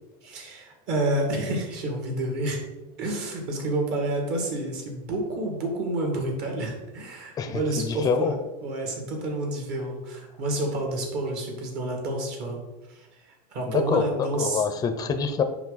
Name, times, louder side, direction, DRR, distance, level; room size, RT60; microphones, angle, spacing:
voice 1, 0.2-2.6 3.0-8.3 8.6-12.6 12.9-14.6, right 1 dB, 50° right, 2 dB, 2.1 m, -29 dB
voice 2, 7.4-8.3 13.7-15.4, left 6 dB, 20° left, 8 dB, 0.5 m, -26 dB
7.1 x 5.5 x 4.0 m, 1.1 s
supercardioid pair, 155°, 21 cm